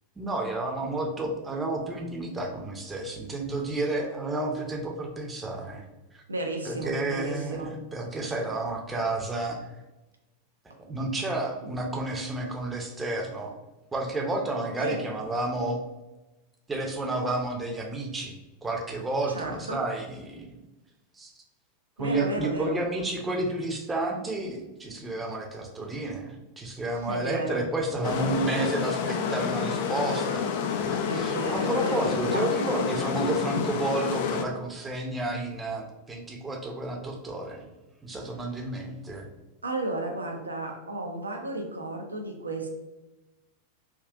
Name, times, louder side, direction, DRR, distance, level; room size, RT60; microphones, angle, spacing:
voice 1, 0.2-5.8 6.1-6.2 6.7-9.6 10.9-13.5 13.9-15.8 16.7-20.6 21.1-21.3 22.0-30.5 30.8-37.7 38.0-39.3, right 2 dB, 15° right, 1 dB, 0.6 m, -31 dB
voice 2, 6.3-7.7 11.6-11.7 14.8-15.0 19.3-19.8 22.0-22.8 27.1-27.6 31.0-32.5 39.6-42.7, right 2 dB, 80° right, 2 dB, 0.5 m, -33 dB
sound 1, 28.0-34.5, left 6 dB, 50° left, 0.3 m, -29 dB
3.5 x 2.3 x 2.4 m, 1.0 s
figure-of-eight pair, 90°, 0 cm